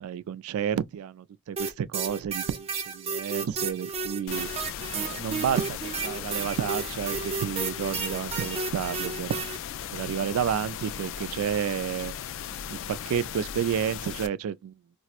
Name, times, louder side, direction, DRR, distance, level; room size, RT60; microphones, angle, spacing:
voice 1, 0.0-2.7 2.9-4.5 4.9-9.4 9.9-12.1 12.7-14.7, right 8 dB, 85° right, 0.3 m, -30 dB
sound 1, 1.6-9.6, right 5 dB, 30° right, 0.5 m, -32 dB
sound 2, 4.3-14.3, left 9 dB, 65° left, 0.4 m, -37 dB
4.3 x 2.0 x 2.4 m
head